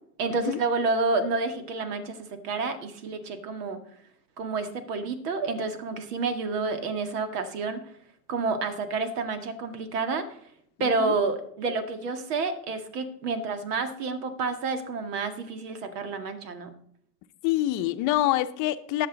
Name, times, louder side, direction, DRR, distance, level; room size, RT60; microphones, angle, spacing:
voice 1, 0.2-3.8 4.4-7.8 8.3-10.3 10.8-16.7, right 3 dB, 65° right, 8 dB, 2.0 m, -29 dB
voice 2, 17.4-19.1, left 14 dB, 40° left, 10 dB, 0.9 m, -26 dB
19.0 x 6.8 x 4.0 m, 0.67 s
hypercardioid pair, 120°, 49 cm